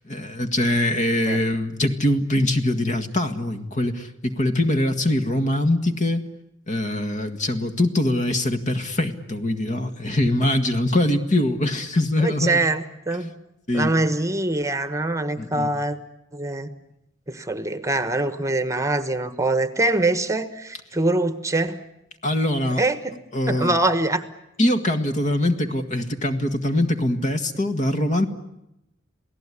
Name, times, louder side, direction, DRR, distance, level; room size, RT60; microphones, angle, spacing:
voice 1, 0.0-6.3 6.7-12.6 13.7-13.9 15.4-15.7 22.2-22.8 23.3-23.7 24.6-28.3, left 1 dB, 40° left, 8 dB, 1.8 m, -23 dB
voice 2, 12.2-13.3 13.7-16.0 16.3-16.7 17.3-21.8 22.8-23.1 23.5-24.2, right 2 dB, 15° right, 12 dB, 1.2 m, -23 dB
27.5 x 18.0 x 9.9 m, 0.88 s
head